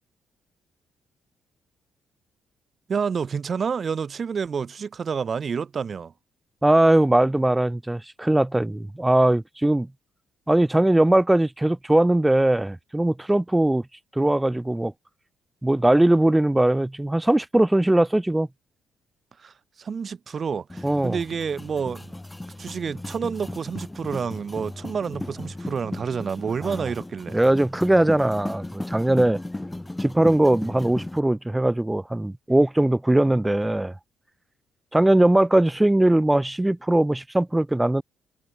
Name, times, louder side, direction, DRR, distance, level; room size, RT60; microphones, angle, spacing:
voice 1, 2.9-6.1 19.4-22.2 22.6-27.4, right 6 dB, 45° right, 1.8 m, -29 dB
voice 2, 6.6-9.9 10.5-13.8 14.2-14.9 15.6-18.5 20.8-21.2 26.6-26.8 27.3-29.4 30.0-33.9 34.9-38.0, right 1 dB, 10° right, 0.4 m, -20 dB
sound 1, 20.7-31.2, left 1 dB, 10° left, 0.8 m, -36 dB
cardioid pair, 90°, 0 cm